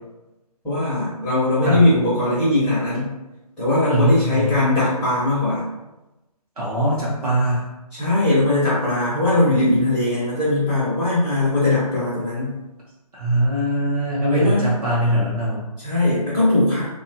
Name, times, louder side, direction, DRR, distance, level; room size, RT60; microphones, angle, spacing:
voice 1, 0.6-3.1 3.6-5.7 7.9-12.5 14.3-14.7 15.8-16.9, left 2 dB, 5° left, -12 dB, 0.5 m, -20 dB
voice 2, 3.9-4.6 6.6-7.7 13.1-15.7, right 1 dB, 70° right, -6 dB, 0.8 m, -21 dB
2.7 x 2.3 x 2.7 m, 1.0 s
hypercardioid pair, 160°, 20 cm